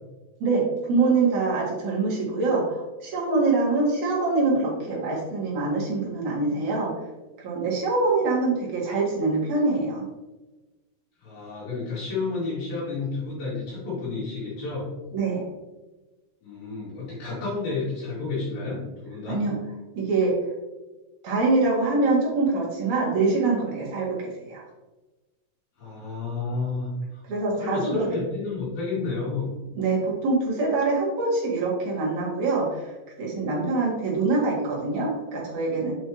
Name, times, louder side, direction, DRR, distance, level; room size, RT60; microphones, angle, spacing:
voice 1, 0.4-6.9 7.4-10.0 15.1-15.4 19.3-19.6 20.0-20.4 21.2-24.6 27.3-28.1 29.7-32.9 33.2-35.9, right 3 dB, 55° right, -4 dB, 2.8 m, -24 dB
voice 2, 11.2-14.9 16.4-19.4 25.8-27.2 27.5-29.5, left 3 dB, 65° left, -10 dB, 3.9 m, -31 dB
7.2 x 5.5 x 3.0 m, 1.1 s
omnidirectional pair, 4.4 m